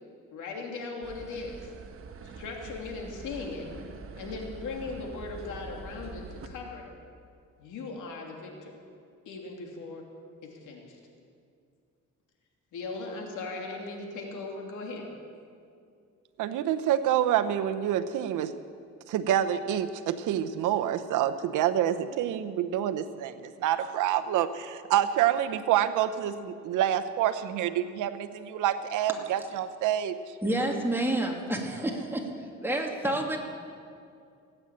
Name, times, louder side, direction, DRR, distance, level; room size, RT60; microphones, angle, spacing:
voice 1, 0.3-1.7 2.2-3.7 4.2-6.8 7.6-8.8 9.3-10.1 10.4-11.0 12.7-15.1, left 3 dB, 85° left, 1 dB, 2.8 m, -38 dB
sound 1, 1.0-6.5, right 4 dB, 45° right, 1.2 m, -44 dB
voice 2, 16.4-18.5 19.1-30.2, right 11 dB, 90° right, 10 dB, 0.9 m, -27 dB
voice 3, 30.4-32.3 32.6-33.4, right 1 dB, 5° right, 0 dB, 2.7 m, -29 dB
18.0 x 9.0 x 8.9 m, 2.4 s
cardioid pair, 90°, 30 cm